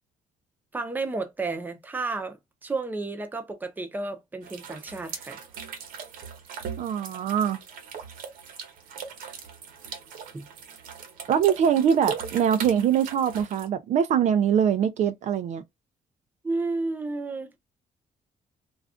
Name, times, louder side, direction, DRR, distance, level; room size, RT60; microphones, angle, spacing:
voice 1, 0.7-5.4 10.3-10.5 16.4-17.6, right 3 dB, 15° right, 0.6 m, -32 dB
sound 1, 4.4-13.7, right 7 dB, 85° right, 1.0 m, -39 dB
voice 2, 6.8-7.6 11.3-15.6, right 8 dB, 55° right, 0.4 m, -23 dB
2.4 x 2.3 x 3.5 m
cardioid pair, 135°, 14 cm